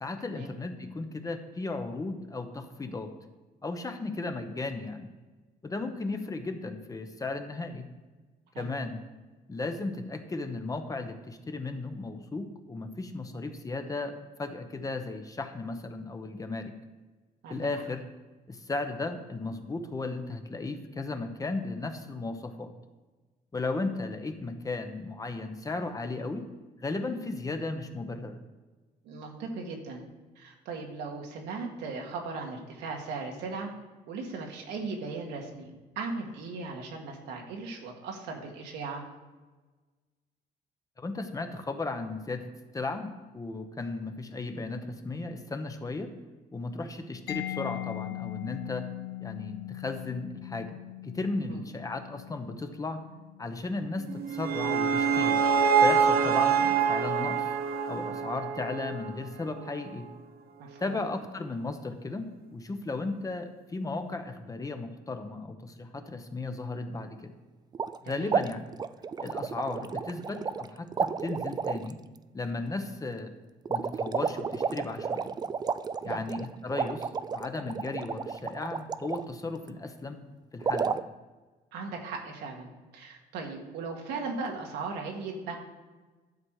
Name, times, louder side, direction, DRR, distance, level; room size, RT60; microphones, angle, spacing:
voice 1, 0.0-3.1 3.6-5.1 5.6-7.9 8.6-9.0 9.5-16.7 17.5-18.0 18.5-22.7 23.5-26.5 26.8-28.4 41.0-46.1 46.5-48.9 49.2-53.0 53.4-55.4 55.8-57.4 57.9-60.1 60.8-67.3 68.0-68.7 69.2-72.0 72.3-73.3 73.7-75.4 76.0-80.2 80.5-81.0, left 3 dB, 20° left, 6 dB, 0.9 m, -35 dB
voice 2, 17.4-17.8 29.0-30.0 30.4-33.7 34.1-35.7 36.0-39.0 51.5-51.6 60.6-61.1 68.0-68.4 76.0-76.2 81.7-85.6, right 4 dB, 85° right, 1 dB, 1.8 m, -38 dB
Mallet percussion, 47.3-54.8, left 17 dB, 75° left, 0.5 m, -41 dB
sound 1, 54.1-59.3, right 6 dB, 65° right, 0.8 m, -25 dB
sound 2, 67.7-68.0 68.3-70.7 70.9-71.9 73.7-79.2 80.6-81.0, right 6 dB, 25° right, 0.3 m, -32 dB
11.5 x 6.2 x 4.8 m, 1.3 s
cardioid pair, 110°, 17 cm